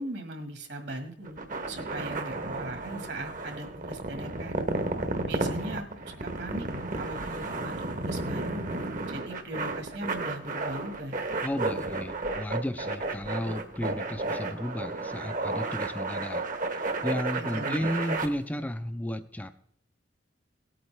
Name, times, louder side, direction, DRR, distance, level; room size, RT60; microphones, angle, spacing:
voice 1, 0.0-1.4 1.7-4.6 5.3-6.7 7.0-8.6 9.1-11.2 17.3-17.9, right 1 dB, 65° right, 5 dB, 1.8 m, -39 dB
sound 1, 1.2-18.3, right 2 dB, 45° right, 1.0 m, -33 dB
voice 2, 11.4-19.5, equal, 10° left, 8 dB, 0.4 m, -33 dB
17.5 x 8.6 x 3.3 m, 0.69 s
head